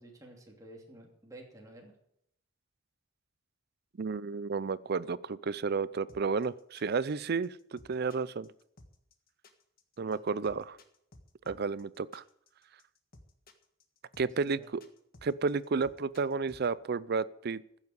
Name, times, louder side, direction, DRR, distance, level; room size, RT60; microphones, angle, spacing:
voice 1, 0.0-1.9 10.0-10.4 14.2-14.7, right 1 dB, 20° right, -1 dB, 2.9 m, -52 dB
voice 2, 4.0-8.5 10.0-10.8 11.5-12.2 14.2-14.8 15.2-17.6, right 4 dB, 55° right, 19 dB, 0.5 m, -32 dB
sound 1, 6.1-16.7, left 1 dB, 50° left, 1.7 m, -57 dB
15.0 x 7.3 x 8.0 m, 0.73 s
head